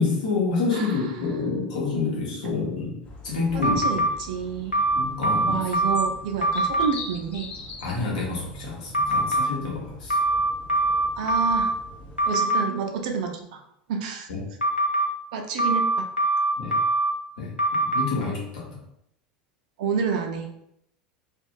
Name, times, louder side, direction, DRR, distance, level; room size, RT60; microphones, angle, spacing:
voice 1, 0.0-3.0 3.2-4.0 4.9-5.6 7.8-10.2 14.3-14.5 16.6-16.8 17.4-17.5 17.8-18.7, left 4 dB, 60° left, -4 dB, 0.9 m, -28 dB
sound 1, 3.0-12.4, left 3 dB, 30° left, 0.5 m, -43 dB
voice 2, 3.5-4.8 5.5-7.5 11.2-11.7 12.3-13.6 13.9-14.3 15.3-16.1 19.8-20.5, right 6 dB, 55° right, 3 dB, 0.5 m, -29 dB
sound 2, 3.6-4.1 4.7-6.1 6.4-6.9 8.9-9.5 10.1-11.7 12.2-12.6 14.6-15.1 15.6-17.1 17.6-18.0, right 2 dB, 90° left, 0.4 m, -22 dB
2.5 x 2.3 x 3.6 m, 0.77 s
figure-of-eight pair, 75°, 5 cm